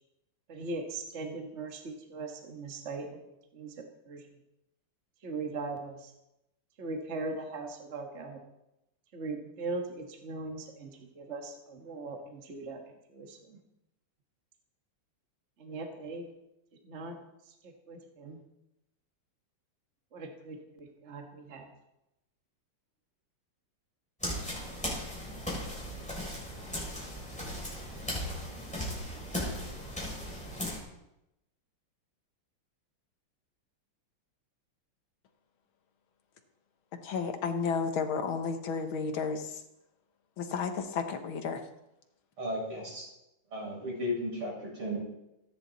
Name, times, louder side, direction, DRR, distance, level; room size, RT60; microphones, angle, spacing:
voice 1, 0.5-3.1 3.5-3.7 4.1-4.2 5.2-6.1 6.8-8.4 9.1-12.8 13.1-13.6 15.6-16.3 16.8-17.2 17.6-18.4 20.1-21.7, right 3 dB, 35° right, 3 dB, 1.7 m, -39 dB
sound 1, 24.2-30.8, equal, 5° left, 6.5 m, -37 dB
voice 2, 37.0-39.6 40.4-41.6, left 5 dB, 70° left, 6 dB, 2.0 m, -32 dB
voice 3, 42.4-43.0 43.5-45.0, left 1 dB, 80° right, -4 dB, 8.3 m, -34 dB
24.5 x 10.5 x 4.1 m, 0.89 s
omnidirectional pair, 2.4 m